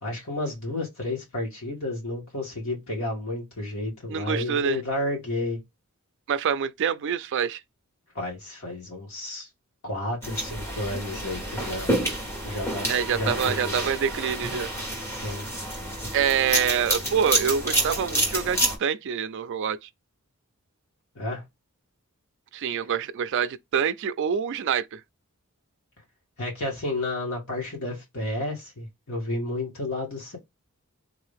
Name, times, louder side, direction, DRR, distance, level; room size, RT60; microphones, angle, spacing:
voice 1, 0.0-5.6 8.1-9.5 9.8-11.9 12.4-13.9 15.1-15.4 21.2-21.4 26.4-30.4, left 1 dB, 70° left, 2.1 m, -31 dB
voice 2, 4.1-4.8 6.3-7.6 12.9-14.7 16.1-19.9 22.5-25.0, right 7 dB, 55° right, 0.4 m, -26 dB
sound 1, 10.2-18.8, right 1 dB, 10° left, 1.3 m, -29 dB
3.7 x 2.7 x 3.4 m
head